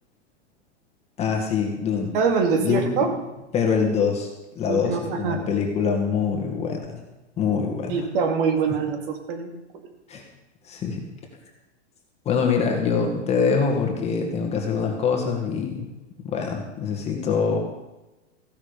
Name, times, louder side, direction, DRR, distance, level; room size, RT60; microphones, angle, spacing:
voice 1, 1.2-2.1 2.6-3.0 3.5-7.0 7.4-8.0 8.7-8.8 10.1-10.2 10.7-11.0 12.3-15.8 16.2-17.6, left 6 dB, 20° left, 1 dB, 2.0 m, -24 dB
voice 2, 2.1-3.1 4.6-5.4 7.9-9.9, right 5 dB, 50° right, 5 dB, 2.4 m, -24 dB
15.5 x 11.5 x 5.2 m, 1.0 s
supercardioid pair, 160°, 35 cm